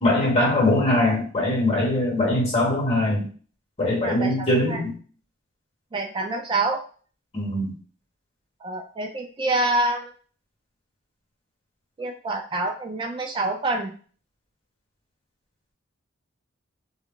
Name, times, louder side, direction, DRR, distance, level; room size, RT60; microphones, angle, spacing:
voice 1, 0.0-3.3 3.8-4.9 7.3-7.7, left 1 dB, 30° left, -3 dB, 1.1 m, -22 dB
voice 2, 4.0-4.8 5.9-6.8 8.6-10.1 12.0-13.9, right 2 dB, 25° right, 2 dB, 0.3 m, -27 dB
2.2 x 2.0 x 3.7 m, 0.41 s
head